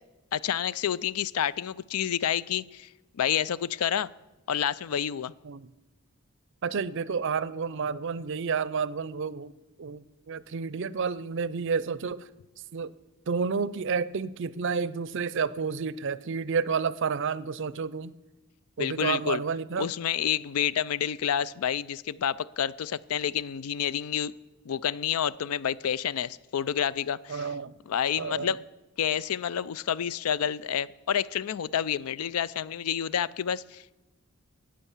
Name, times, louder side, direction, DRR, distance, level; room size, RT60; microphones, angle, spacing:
voice 1, 0.3-2.9 3.1-4.1 4.5-5.3 18.8-19.4 19.8-24.3 24.7-27.5 27.9-28.6 29.0-34.0, left 9 dB, 75° left, 20 dB, 0.4 m, -29 dB
voice 2, 6.6-12.3 12.7-12.9 13.3-18.1 18.8-19.9 27.3-27.8 28.2-28.6, right 5 dB, 55° right, 19 dB, 0.5 m, -30 dB
14.0 x 8.8 x 7.2 m, 1.0 s
head